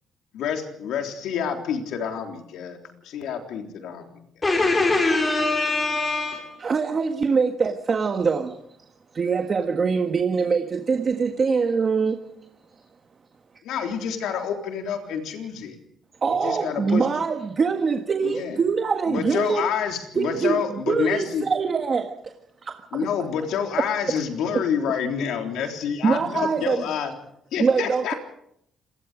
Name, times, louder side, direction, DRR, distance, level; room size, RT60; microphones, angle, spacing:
voice 1, 0.3-2.8 3.0-4.0 13.6-15.7 16.3-17.1 18.2-18.6 19.1-21.4 22.9-27.1 27.5-28.1, left 7 dB, 85° left, 4 dB, 3.7 m, -28 dB
voice 2, 4.4-6.7, left 2 dB, 25° left, 0 dB, 4.6 m, -22 dB
voice 3, 6.6-8.6 9.1-12.2 16.2-19.7 20.1-22.3 22.6-23.1 24.5-24.6 26.0-26.8 27.6-28.1, right 5 dB, 40° right, 5 dB, 1.5 m, -23 dB
27.0 x 19.5 x 5.1 m, 0.72 s
cardioid pair, 90°, 0 cm